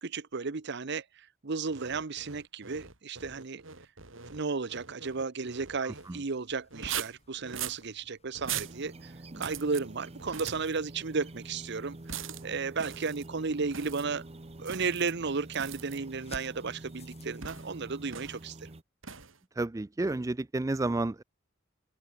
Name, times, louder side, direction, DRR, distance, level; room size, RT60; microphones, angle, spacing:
voice 1, 0.0-1.0 1.4-3.6 4.3-14.2 14.6-18.7, right 4 dB, 60° right, 0.9 m, -34 dB
sound 1, 1.7-6.1 6.7-7.8 8.3-8.8 9.3-9.8 10.2-10.8 12.1-12.4 12.8-13.3 13.7-14.1 14.6-15.1 15.5-16.0 17.4-17.7 18.1-18.4 19.0-19.4, right 8 dB, 75° right, 4.2 m, -41 dB
sound 2, 5.9-17.7, left 2 dB, 35° left, 6.5 m, -58 dB
sound 3, 8.4-18.8, right 2 dB, 30° right, 1.0 m, -47 dB
voice 2, 19.6-21.2, right 2 dB, 15° right, 0.4 m, -30 dB
head